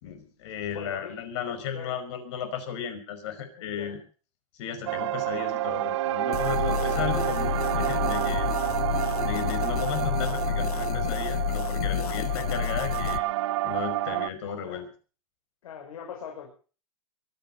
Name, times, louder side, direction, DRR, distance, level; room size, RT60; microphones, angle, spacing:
voice 1, 0.0-4.0 4.6-8.5 9.2-13.2 13.6-14.9, left 8 dB, 50° left, 9 dB, 5.4 m, -35 dB
voice 2, 0.7-1.2 1.5-2.0 3.6-4.0 6.7-7.0 12.3-12.5 14.6-14.9 15.6-16.5, left 7 dB, 65° left, 2 dB, 5.8 m, -42 dB
sound 1, 4.9-14.3, right 15 dB, 50° right, 1.0 m, -29 dB
sound 2, 6.3-13.2, left 10 dB, 85° left, 1.1 m, -29 dB
23.5 x 9.9 x 5.5 m, 0.38 s
supercardioid pair, 160°, 19 cm